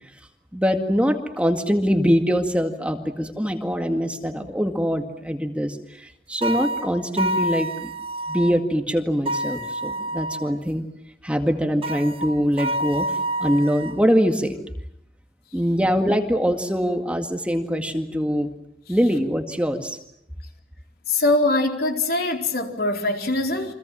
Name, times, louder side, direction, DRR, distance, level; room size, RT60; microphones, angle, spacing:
voice 1, 0.5-7.9 8.3-10.8 11.2-14.6 15.5-18.5 18.9-20.0, equal, 5° right, 5 dB, 2.0 m, -23 dB
sound 1, 6.4-8.5 9.2-10.5 11.8-14.0, right 1 dB, 30° right, 1.4 m, -28 dB
voice 2, 21.1-23.7, left 2 dB, 60° left, 3 dB, 4.3 m, -22 dB
29.5 x 25.5 x 7.5 m, 0.73 s
head